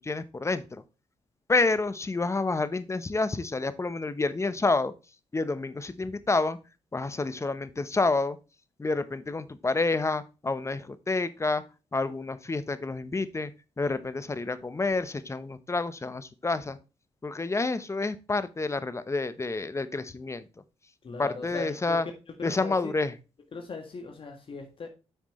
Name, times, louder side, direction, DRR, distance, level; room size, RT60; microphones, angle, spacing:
voice 1, 0.0-0.8 1.5-4.9 5.3-6.6 6.9-8.4 8.8-11.6 11.9-13.5 13.8-16.8 17.2-20.4 21.2-22.1 22.4-23.1, left 3 dB, 25° left, 14 dB, 0.9 m, -29 dB
voice 2, 21.0-22.0 22.4-22.9 23.5-24.9, left 4 dB, 50° left, 4 dB, 1.6 m, -39 dB
8.1 x 6.1 x 3.1 m, 0.30 s
cardioid pair, 70°, 11 cm